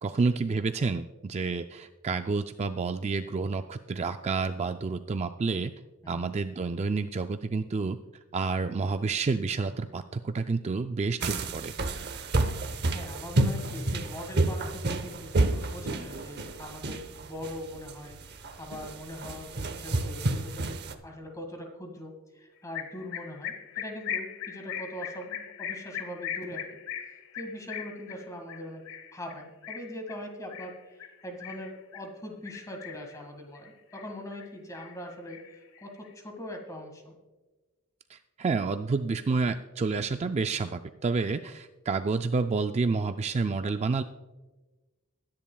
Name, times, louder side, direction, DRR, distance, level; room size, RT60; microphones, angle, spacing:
voice 1, 0.0-5.7 6.1-8.0 8.3-11.7 38.1-44.0, right 4 dB, 30° right, 8 dB, 0.3 m, -29 dB
sound 1, 11.2-20.9, right 2 dB, 50° right, 0.8 m, -30 dB
voice 2, 12.9-26.8 27.0-28.8 29.1-35.4 35.8-37.2, left 1 dB, 15° left, 3 dB, 1.8 m, -42 dB
sound 2, 22.7-32.1 32.5-33.2 33.5-34.5 34.7-36.1, left 9 dB, 55° left, 0.9 m, -39 dB
21.0 x 10.5 x 2.3 m, 1.2 s
head